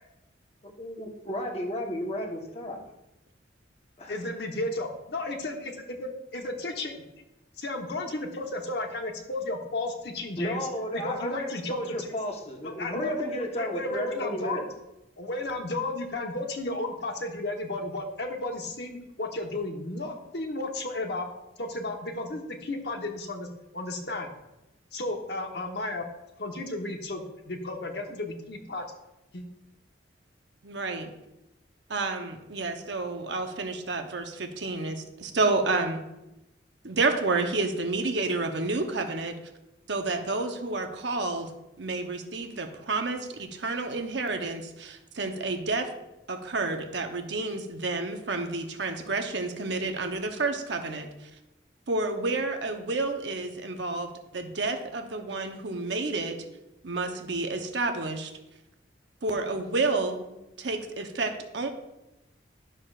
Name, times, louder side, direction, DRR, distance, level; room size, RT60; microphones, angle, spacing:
voice 1, 0.8-2.8 4.0-4.1 10.4-14.6, equal, 35° left, 0 dB, 1.1 m, -33 dB
voice 2, 4.1-5.7 6.0-7.0 7.6-10.7 10.9-12.0 12.6-14.6 15.2-21.3 21.6-23.5 23.7-24.3 24.9-26.0 26.4-28.8 29.3-29.4, left 2 dB, 60° left, 3 dB, 1.1 m, -33 dB
voice 3, 30.6-31.1 31.9-36.0 36.8-39.3 39.9-41.5 41.8-45.9 46.3-51.3 51.9-56.4 56.8-58.3 59.2-60.2 60.6-61.7, right 3 dB, 65° right, 5 dB, 0.9 m, -30 dB
11.5 x 6.6 x 2.5 m, 0.93 s
head